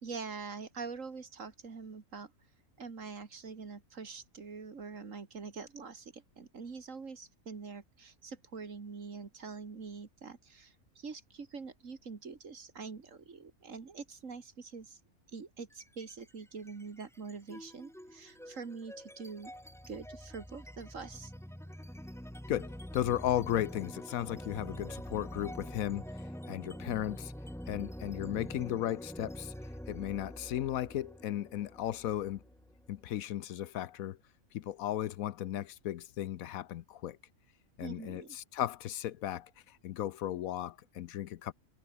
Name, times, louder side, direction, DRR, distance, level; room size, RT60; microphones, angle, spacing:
voice 1, 0.0-2.3 2.8-15.0 15.3-19.5 19.9-21.3 37.8-38.4, right 5 dB, 60° right, 2.5 m, -45 dB
sound 1, 15.7-16.2 16.6-33.2, equal, ahead, 1.4 m, -46 dB
voice 2, 22.5-26.0 26.5-27.3 27.7-29.5 29.9-32.4 32.9-34.2 34.5-37.2 37.8-39.5 39.8-41.5, left 12 dB, 75° left, 1.1 m, -35 dB
omnidirectional pair, 1.5 m